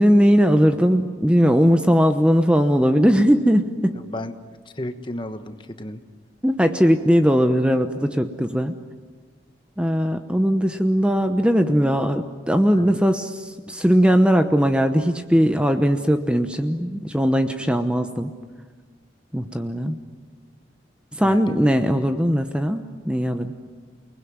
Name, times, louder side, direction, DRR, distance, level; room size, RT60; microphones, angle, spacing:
voice 1, 0.0-4.0 6.4-8.8 9.8-18.3 19.3-20.0 21.1-23.5, equal, 5° right, 7 dB, 0.9 m, -19 dB
voice 2, 4.0-4.3 4.7-6.0 12.7-12.9 19.9-20.0 21.2-21.5, left 1 dB, 25° left, 8 dB, 1.3 m, -33 dB
29.5 x 20.0 x 9.6 m, 1.4 s
head